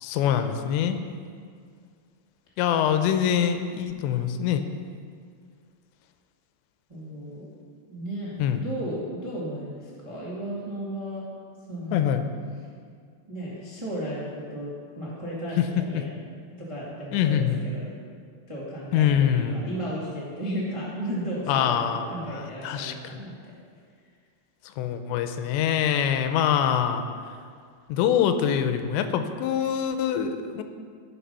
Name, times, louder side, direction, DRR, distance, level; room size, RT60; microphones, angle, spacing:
voice 1, 0.0-1.0 2.6-4.6 8.4-8.6 11.9-12.2 15.6-15.7 15.9-16.0 17.1-17.6 18.9-19.6 21.5-23.2 24.8-27.1 27.9-30.6, left 9 dB, 90° left, 8 dB, 2.9 m, -24 dB
voice 2, 6.9-7.5 7.9-11.2 11.7-12.1 13.3-16.1 16.6-17.9 18.5-23.5, equal, 30° right, -7 dB, 0.6 m, -34 dB
16.0 x 6.0 x 5.6 m, 2.1 s
omnidirectional pair, 5.1 m